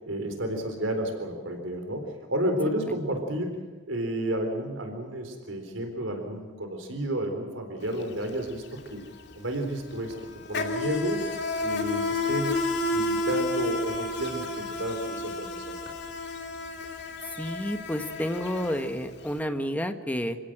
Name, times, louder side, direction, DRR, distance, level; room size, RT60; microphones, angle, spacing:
voice 1, 0.0-9.0 9.4-10.1 10.5-11.2 11.6-12.6 12.9-15.7, right 1 dB, 90° right, 5 dB, 4.0 m, -31 dB
Insect, 7.8-8.0 8.3-19.3, left 2 dB, 60° left, 2.9 m, -31 dB
voice 2, 17.3-20.4, equal, 10° left, 7 dB, 1.5 m, -30 dB
28.0 x 17.0 x 7.6 m, 1.5 s
head